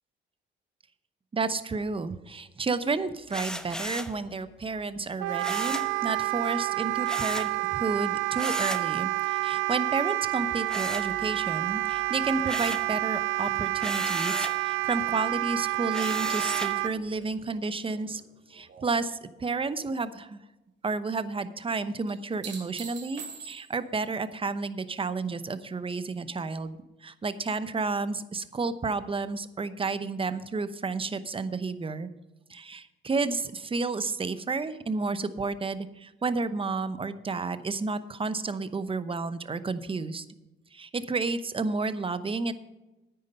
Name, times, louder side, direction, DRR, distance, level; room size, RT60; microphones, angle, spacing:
voice 1, 1.3-18.2 18.5-20.4 20.8-32.1 32.5-40.2 40.7-42.5, right 4 dB, 25° right, 12 dB, 0.8 m, -31 dB
sound 1, 3.3-4.2 5.4-5.9 7.0-7.5 8.3-8.9 10.7-11.5 11.9-12.9 13.8-14.6 15.9-16.8, equal, 5° left, 0.9 m, -35 dB
Wind instrument woodwind instrument, 5.2-16.9, right 18 dB, 85° right, 0.4 m, -29 dB
sound 2, 15.5-19.0 19.4-20.0 22.1-24.0 26.6-26.7, right 6 dB, 65° right, 2.9 m, -46 dB
9.6 x 9.5 x 5.6 m, 1.0 s
cardioid pair, 90°, 20 cm